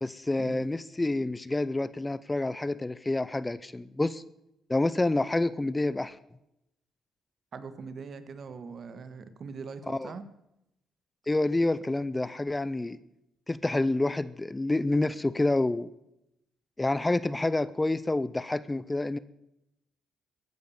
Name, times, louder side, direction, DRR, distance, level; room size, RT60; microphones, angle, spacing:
voice 1, 0.0-4.2 4.7-6.2 9.9-10.1 11.3-13.0 13.5-15.9 16.8-19.2, left 2 dB, 15° left, 17 dB, 0.5 m, -28 dB
voice 2, 7.5-10.3, right 5 dB, 50° right, 12 dB, 1.5 m, -42 dB
14.5 x 10.5 x 7.2 m, 0.85 s
cardioid pair, 90°, 0 cm